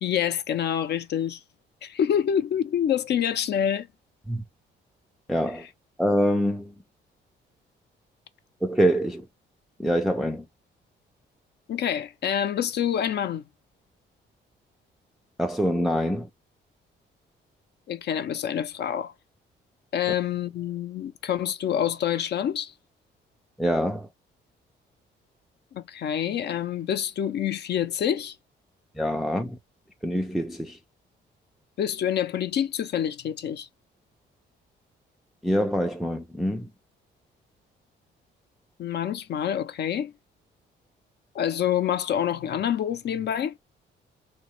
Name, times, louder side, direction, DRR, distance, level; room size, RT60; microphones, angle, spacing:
voice 1, 0.0-1.4 1.8-3.9 5.5-5.7 11.7-13.4 17.9-19.1 19.9-22.7 25.7-28.3 31.8-33.7 38.8-40.1 41.3-43.5, left 9 dB, 55° left, 0.5 m, -27 dB
voice 2, 5.3-5.6 6.0-6.7 8.6-9.2 9.8-10.4 15.4-16.3 23.6-24.1 29.0-29.6 30.0-30.8 35.4-36.6, equal, ahead, 0.4 m, -25 dB
3.0 x 2.3 x 3.0 m
cardioid pair, 90°, 20 cm